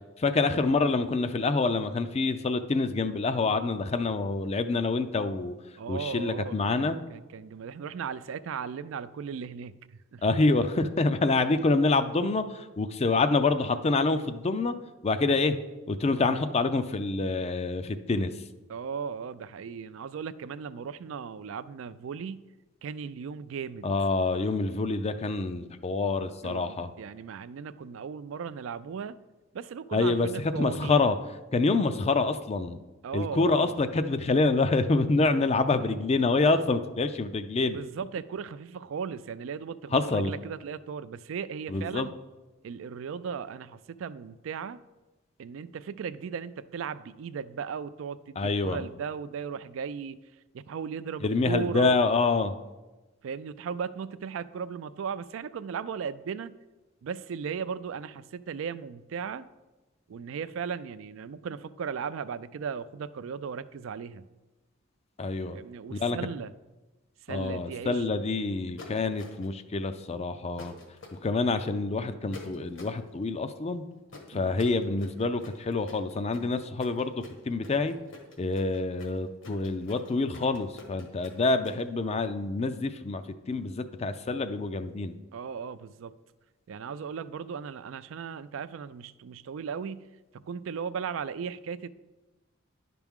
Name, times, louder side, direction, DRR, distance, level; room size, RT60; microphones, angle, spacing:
voice 1, 0.2-5.5 5.9-7.0 10.2-14.7 15.0-15.6 15.9-18.3 23.8-26.9 29.9-30.3 30.6-31.2 31.5-32.8 33.1-37.8 39.9-40.3 41.7-42.1 48.4-48.8 51.2-52.5 65.2-65.6 65.9-66.2 67.3-70.7 71.2-73.8 74.3-78.0 78.4-85.1, left 3 dB, 30° left, 10 dB, 0.4 m, -27 dB
voice 2, 5.8-9.8 10.1-10.2 18.7-22.5 22.8-23.9 26.4-29.2 29.5-31.0 33.0-33.8 37.6-42.1 42.6-44.8 45.4-50.2 50.5-52.0 53.2-56.5 57.0-59.4 60.1-64.3 65.5-66.5 67.3-68.0 74.3-74.6 85.3-86.1 86.7-91.9, right 6 dB, 75° right, 14 dB, 0.3 m, -37 dB
sound 1, 68.8-69.6 70.6-71.2 72.3-73.0 74.1-81.8, left 3 dB, 70° left, 1.4 m, -47 dB
10.5 x 5.9 x 3.6 m, 1.1 s
head